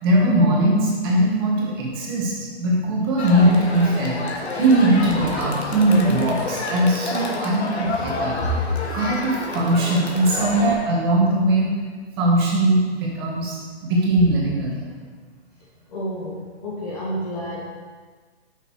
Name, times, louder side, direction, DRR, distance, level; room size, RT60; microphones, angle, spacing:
voice 1, 0.0-11.7 12.2-14.9, right 1 dB, 25° right, -3 dB, 1.2 m, -20 dB
Crowd, 3.2-10.7, left 3 dB, 80° left, 1.4 m, -29 dB
voice 2, 15.9-17.6, equal, 35° left, -5 dB, 1.4 m, -28 dB
9.0 x 6.1 x 3.1 m, 1.5 s
hypercardioid pair, 160°, 32 cm